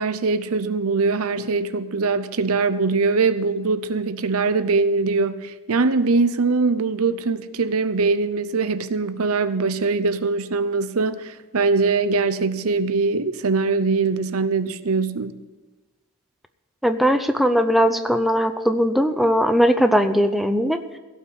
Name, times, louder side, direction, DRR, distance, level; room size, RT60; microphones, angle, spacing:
voice 1, 0.0-15.4, right 4 dB, 70° right, 0.7 m, -22 dB
voice 2, 16.8-20.8, equal, ahead, 0.5 m, -19 dB
16.5 x 5.9 x 8.2 m
head